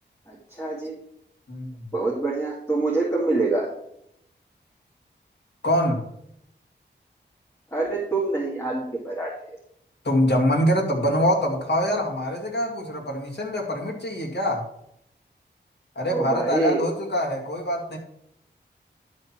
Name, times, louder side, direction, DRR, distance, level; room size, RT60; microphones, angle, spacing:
voice 1, 0.3-1.0 1.9-3.7 7.7-9.3 16.1-16.8, right 3 dB, 15° left, -4 dB, 2.2 m, -25 dB
voice 2, 1.5-1.9 5.6-6.0 10.0-14.6 16.0-18.0, equal, 65° left, 0 dB, 2.3 m, -24 dB
11.0 x 4.4 x 6.0 m, 0.75 s
wide cardioid pair, 100°, 19 cm